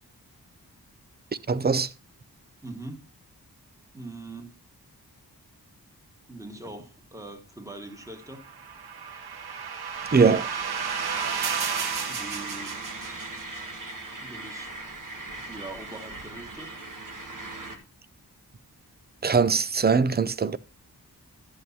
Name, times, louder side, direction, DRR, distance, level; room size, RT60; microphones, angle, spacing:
voice 1, 1.5-1.9 10.1-10.5 19.2-20.6, right 5 dB, 25° right, 0.4 m, -21 dB
voice 2, 2.6-3.1 3.9-4.5 6.3-8.4 12.1-12.8 14.2-14.7 15.5-16.7, right 2 dB, 10° right, 1.5 m, -42 dB
sound 1, 8.3-13.6, right 6 dB, 85° right, 0.9 m, -32 dB
sound 2, 9.9-17.8, right 2 dB, 55° right, 1.6 m, -40 dB
11.0 x 7.8 x 2.7 m
wide cardioid pair, 85°, 38 cm